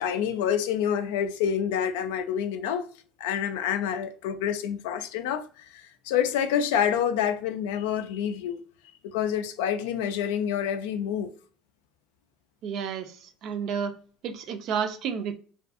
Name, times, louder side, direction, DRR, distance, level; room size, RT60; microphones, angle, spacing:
voice 1, 0.0-2.9 3.2-8.6 9.0-11.3, left 8 dB, 85° left, 0.3 m, -27 dB
voice 2, 12.6-13.9 14.2-15.3, right 7 dB, 60° right, 0.4 m, -31 dB
2.6 x 2.3 x 2.4 m
supercardioid pair, 100°, 0 cm